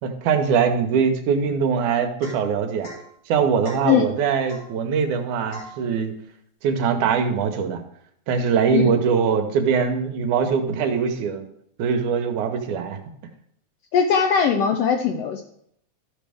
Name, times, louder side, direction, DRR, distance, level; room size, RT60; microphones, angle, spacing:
voice 1, 0.0-2.9 3.3-6.1 6.6-7.8 8.3-11.5 11.8-13.0, right 6 dB, 80° right, 7 dB, 2.4 m, -22 dB
Domestic sounds home sounds / Chink clink / Drip, 2.2-2.5 2.8-3.1 3.6-3.9 4.5-4.7 5.5-5.8, left 1 dB, 55° left, 3.9 m, -40 dB
voice 2, 13.9-15.4, left 6 dB, 80° left, 4 dB, 1.4 m, -20 dB
13.0 x 6.2 x 3.5 m, 0.70 s
omnidirectional pair, 3.5 m